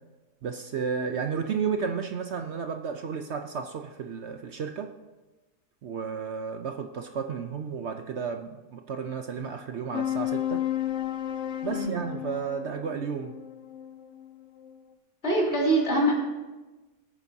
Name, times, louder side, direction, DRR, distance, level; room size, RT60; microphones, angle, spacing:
voice 1, 0.4-4.9 5.8-10.7 11.6-13.3, right 6 dB, 60° right, 6 dB, 0.8 m, -32 dB
sound 1, 9.9-14.8, left 12 dB, 60° left, 1.0 m, -33 dB
voice 2, 15.2-16.1, right 1 dB, 40° left, -4 dB, 3.9 m, -24 dB
21.5 x 9.0 x 2.7 m, 1.2 s
omnidirectional pair, 1.6 m